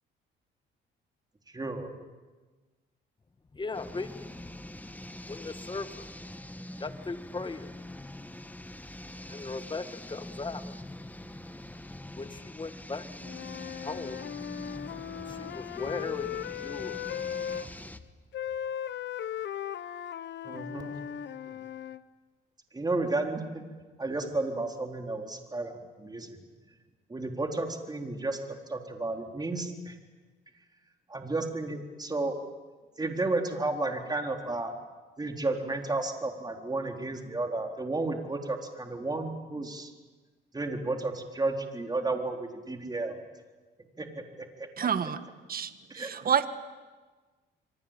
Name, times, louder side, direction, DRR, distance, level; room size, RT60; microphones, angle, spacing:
voice 1, 1.5-2.0 20.4-21.0 21.4-21.6 22.7-23.6 24.0-26.4 27.1-30.0 31.1-32.4 33.0-34.7 35.2-39.9 40.5-43.2 44.0-44.7 45.9-46.1, right 2 dB, 20° right, 3 dB, 4.0 m, -32 dB
voice 2, 3.5-4.3 5.3-6.1 6.8-7.7 9.3-10.8 12.1-13.1 13.8-14.3 15.3-17.1 17.7-17.8, left 3 dB, 25° left, 10 dB, 1.9 m, -38 dB
sound 1, 3.7-18.0, left 1 dB, 10° left, 1.5 m, -44 dB
Wind instrument woodwind instrument, 13.2-17.7 18.3-22.0, left 9 dB, 65° left, 1.1 m, -37 dB
voice 3, 44.8-45.2 45.5-46.5, right 7 dB, 50° right, 11 dB, 1.7 m, -28 dB
27.5 x 23.5 x 9.0 m, 1.3 s
cardioid pair, 90°, 20 cm